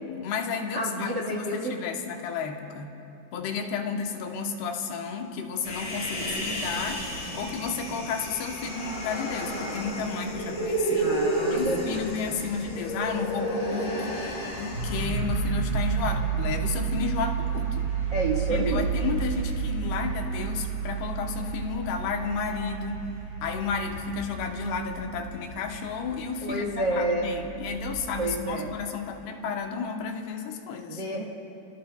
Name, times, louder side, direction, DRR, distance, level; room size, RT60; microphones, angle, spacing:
voice 1, 0.0-3.0 3.3-7.1 7.3-11.2 11.5-17.9 18.5-23.1 23.4-31.0, left 5 dB, 75° left, 3 dB, 2.9 m, -32 dB
voice 2, 0.7-1.8 11.0-12.0 18.1-18.9 26.4-27.3 28.2-28.7 30.9-31.3, right 2 dB, 90° right, -2 dB, 1.0 m, -29 dB
Human voice, 5.6-15.0, right 1 dB, 60° left, 6.2 m, -31 dB
sound 1, 14.7-28.5, right 6 dB, 50° right, 6.0 m, -31 dB
29.5 x 19.0 x 2.3 m, 2.8 s
omnidirectional pair, 4.8 m